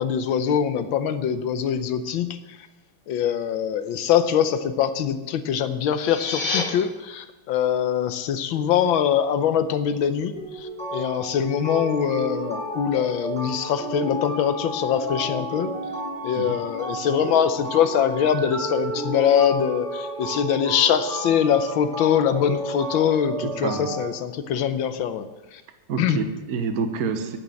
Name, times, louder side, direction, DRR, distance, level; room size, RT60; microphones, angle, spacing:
voice 1, 0.0-2.4 3.1-15.7 16.2-25.3 25.5-25.6 26.0-26.2, left 8 dB, 75° left, 11 dB, 1.5 m, -23 dB
sound 1, 5.8-6.6, left 4 dB, 25° left, 1.5 m, -28 dB
sound 2, 10.4-24.1, right 1 dB, 5° left, 5.6 m, -32 dB
voice 2, 23.4-23.9 25.9-27.4, right 5 dB, 50° right, 7 dB, 1.4 m, -28 dB
11.0 x 9.0 x 7.6 m, 1.1 s
omnidirectional pair, 2.2 m